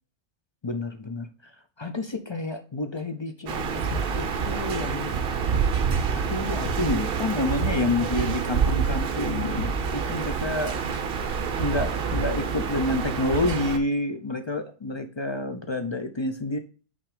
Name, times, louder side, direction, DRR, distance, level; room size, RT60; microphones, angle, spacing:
voice 1, 0.6-1.3 1.8-5.1 6.1-10.8 11.6-16.6, left 2 dB, 40° left, 8 dB, 0.4 m, -29 dB
sound 1, 3.5-13.8, right 6 dB, 50° right, 0.8 m, -27 dB
sound 2, 3.9-4.3 6.6-7.0 9.6-9.9 12.1-12.5, right 2 dB, 70° left, 2.2 m, -32 dB
6.0 x 4.3 x 4.9 m, 0.37 s
omnidirectional pair, 1.4 m